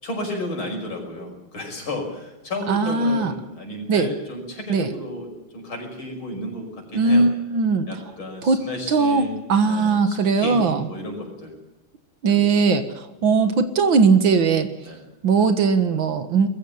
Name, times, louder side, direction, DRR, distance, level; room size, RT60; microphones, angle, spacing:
voice 1, 0.0-5.3 5.5-7.2 7.9-9.4 9.6-11.5 12.3-12.5 14.8-15.1, left 1 dB, 70° left, 2 dB, 6.4 m, -33 dB
voice 2, 2.7-3.3 3.9-4.1 4.7-4.9 6.9-7.9 8.4-10.9 12.2-14.7 15.2-16.5, right 4 dB, 65° right, 10 dB, 2.2 m, -19 dB
21.5 x 15.0 x 9.3 m, 0.95 s
omnidirectional pair, 2.3 m